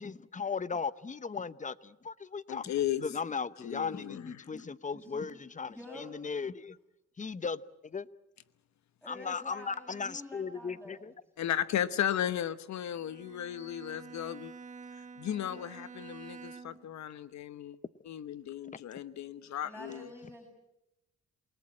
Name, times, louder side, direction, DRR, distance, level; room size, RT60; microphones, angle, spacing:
voice 1, 0.0-2.7 3.0-6.8 7.2-8.1 9.1-11.1 18.7-18.8, left 5 dB, 25° left, 0.9 m, -37 dB
voice 2, 2.5-3.1 3.6-4.5 11.4-14.5 14.9-17.8 18.1-20.1, left 10 dB, 65° left, 1.0 m, -35 dB
voice 3, 4.9-5.3 5.7-6.1 9.0-11.1 15.4-15.9 19.6-20.5, left 2 dB, 5° left, 7.2 m, -48 dB
Bowed string instrument, 12.9-17.0, right 5 dB, 25° right, 1.0 m, -49 dB
28.5 x 19.0 x 8.7 m
cardioid pair, 90°, 30 cm